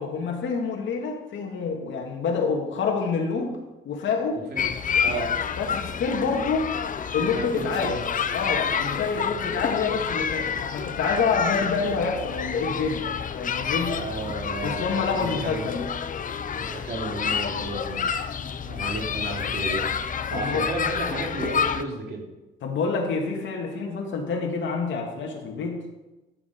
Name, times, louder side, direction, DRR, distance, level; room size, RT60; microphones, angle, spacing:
voice 1, 0.0-3.6 3.8-4.4 5.6-6.7 7.1-7.9 8.3-14.0 14.6-15.9 20.3-20.7 22.6-25.8, left 5 dB, 70° left, 0 dB, 2.3 m, -27 dB
voice 2, 4.3-4.7 5.0-5.3 7.2-8.0 14.0-15.8 16.5-18.1 18.6-19.9 20.3-22.2, right 3 dB, 55° right, 0 dB, 3.1 m, -33 dB
sound 1, 4.6-21.8, left 7 dB, 40° left, 0.7 m, -29 dB
11.5 x 7.3 x 5.4 m, 1.0 s
cardioid pair, 90°, 20 cm